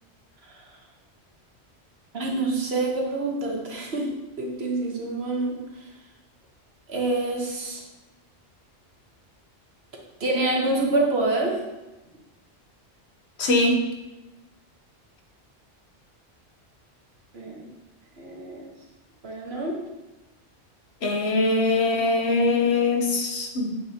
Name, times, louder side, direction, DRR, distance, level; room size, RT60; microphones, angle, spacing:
voice 1, 2.1-4.1 4.4-5.6 6.9-7.8 10.2-11.6 17.3-17.7 18.2-18.7 19.2-19.8, right 2 dB, 65° right, 0 dB, 1.5 m, -26 dB
voice 2, 13.4-13.8 21.0-23.7, left 2 dB, 70° left, 2 dB, 1.2 m, -22 dB
8.0 x 6.3 x 2.9 m, 1.0 s
omnidirectional pair, 1.2 m